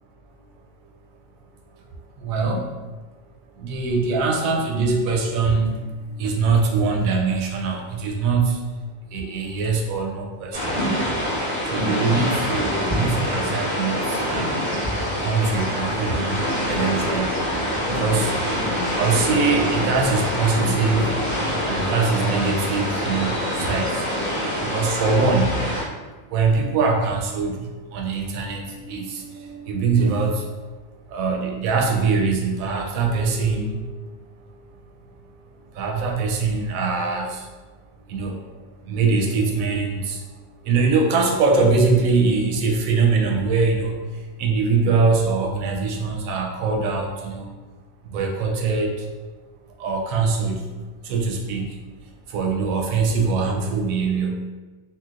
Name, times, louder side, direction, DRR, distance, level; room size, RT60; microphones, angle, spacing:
voice 1, 2.2-2.7 3.6-5.7 6.1-8.6 9.1-10.7 11.7-13.9 14.2-14.6 15.2-16.4 16.7-17.4 17.9-18.3 18.9-24.0 24.7-25.6 26.3-30.4 31.1-34.0 35.7-37.5 38.1-38.4 38.9-40.2 40.6-43.9 44.4-47.5 48.1-49.1 49.8-50.7 51.0-51.8 52.3-54.4, right 4 dB, 90° right, 1 dB, 1.0 m, -22 dB
sound 1, 10.5-25.8, equal, 25° right, 1.6 m, -25 dB
3.8 x 2.3 x 2.4 m, 1.3 s
omnidirectional pair, 1.4 m